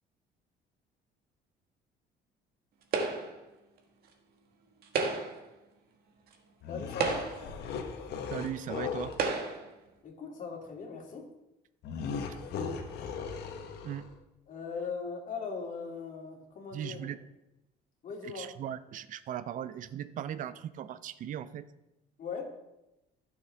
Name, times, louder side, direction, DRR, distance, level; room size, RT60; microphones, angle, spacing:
sound 1, 2.9-3.5 4.8-5.5 6.3-6.4 6.9-7.6 8.5-8.6 9.1-9.7, right 4 dB, 65° right, 1.6 m, -32 dB
sound 2, 6.6-9.2 11.8-14.1, left 6 dB, 80° left, 1.2 m, -38 dB
voice 1, 6.7-7.2 10.0-11.2 14.5-17.1 18.0-18.5 22.2-22.4, left 5 dB, 50° left, 0 dB, 2.7 m, -39 dB
voice 2, 8.3-9.1 13.8-14.1 16.7-17.2 18.2-21.7, right 10 dB, 50° right, 13 dB, 0.5 m, -38 dB
15.5 x 6.4 x 3.5 m, 0.92 s
cardioid pair, 110°, 17 cm